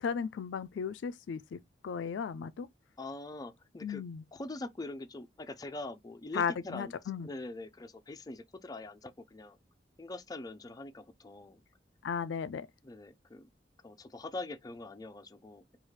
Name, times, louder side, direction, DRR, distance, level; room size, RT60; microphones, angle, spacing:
voice 1, 0.0-2.7 3.8-4.2 6.3-7.3 12.0-12.7, left 6 dB, 85° left, 0.4 m, -35 dB
voice 2, 3.0-4.0 4.3-6.9 7.2-9.6 10.0-11.6 12.8-13.5 13.8-15.8, left 2 dB, 20° left, 0.4 m, -43 dB
4.7 x 2.4 x 3.2 m
head